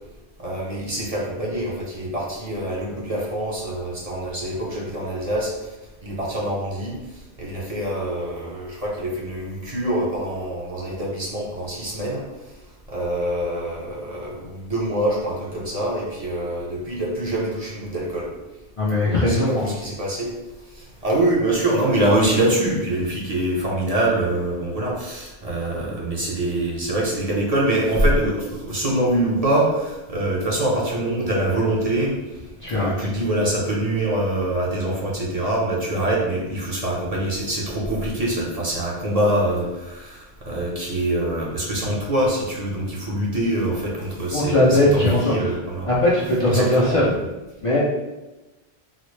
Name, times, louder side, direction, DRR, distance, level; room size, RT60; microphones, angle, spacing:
voice 1, 0.4-5.7 6.0-12.2 12.9-18.3 18.9-20.3 20.7-32.4 32.7-45.9 46.5-47.0, right 1 dB, 40° right, -4 dB, 0.7 m, -24 dB
voice 2, 18.8-19.7 32.6-33.1 44.3-45.5 45.9-47.1 47.6-47.8, left 1 dB, 45° left, -7 dB, 0.5 m, -19 dB
4.0 x 2.0 x 3.1 m, 1.1 s
omnidirectional pair, 1.0 m